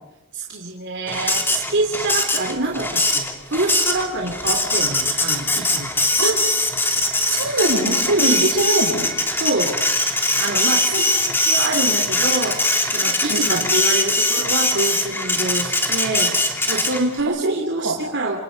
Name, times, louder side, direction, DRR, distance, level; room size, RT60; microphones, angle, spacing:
voice 1, 0.3-6.0 8.2-8.4 9.4-9.7 10.4-12.6 12.9-16.3 16.6-18.4, right 2 dB, 55° right, 0 dB, 3.2 m, -25 dB
Printer, 1.1-17.2, left 2 dB, 10° left, 2.7 m, -21 dB
voice 2, 7.3-9.1 10.9-11.0 13.3-13.6 17.3-17.4 17.8-18.0, right 2 dB, 85° right, 1 dB, 7.4 m, -23 dB
29.0 x 27.5 x 5.3 m, 0.94 s
head